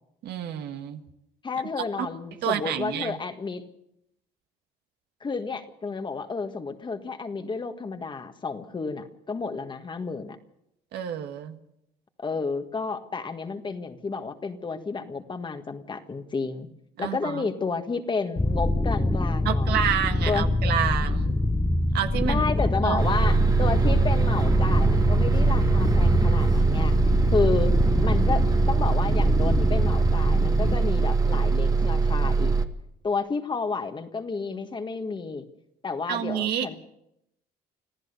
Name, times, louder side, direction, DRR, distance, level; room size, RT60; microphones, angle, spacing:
voice 1, 0.2-1.0 2.4-3.2 10.9-11.6 17.0-17.5 19.5-21.4 21.9-22.5 22.8-23.0 36.1-36.7, right 10 dB, 75° right, 7 dB, 1.7 m, -28 dB
voice 2, 1.4-3.6 5.2-10.4 12.2-16.7 17.0-19.8 20.3-20.5 22.3-27.0 27.3-27.8 28.0-32.5 33.0-35.5 35.8-36.8, left 4 dB, 30° left, 7 dB, 1.7 m, -31 dB
sound 1, 18.4-30.8, left 1 dB, 10° left, 1.2 m, -25 dB
Bus, 23.0-32.6, right 4 dB, 20° right, 1.6 m, -22 dB
25.5 x 15.0 x 6.9 m, 0.81 s
cardioid pair, 110°, 17 cm